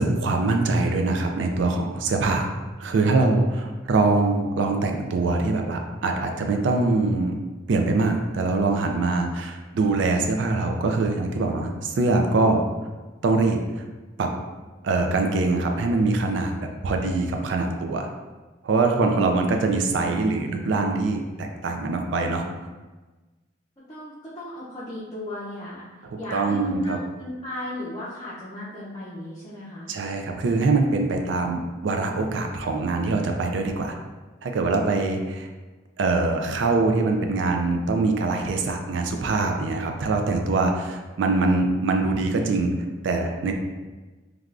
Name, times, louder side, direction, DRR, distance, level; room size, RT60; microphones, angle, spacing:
voice 1, 0.0-2.5 2.8-7.4 7.7-12.6 13.2-13.6 14.2-14.3 14.8-18.1 18.6-22.4 26.3-27.0 29.9-33.9 34.4-35.5 36.0-42.7 43.0-43.5, right 3 dB, 70° right, 4 dB, 0.4 m, -23 dB
voice 2, 23.8-25.9 26.2-29.9, left 1 dB, 20° left, -10 dB, 0.5 m, -36 dB
3.2 x 2.3 x 2.4 m, 1.2 s
head